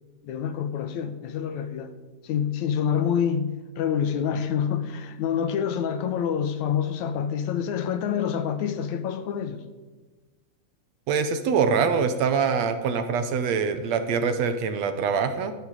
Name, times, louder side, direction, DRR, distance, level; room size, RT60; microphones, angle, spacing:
voice 1, 0.2-1.9 2.2-9.6, left 8 dB, 75° left, 2.2 m, -27 dB
voice 2, 11.1-15.6, right 6 dB, 70° right, 2.0 m, -24 dB
19.0 x 11.5 x 4.8 m
omnidirectional pair, 3.5 m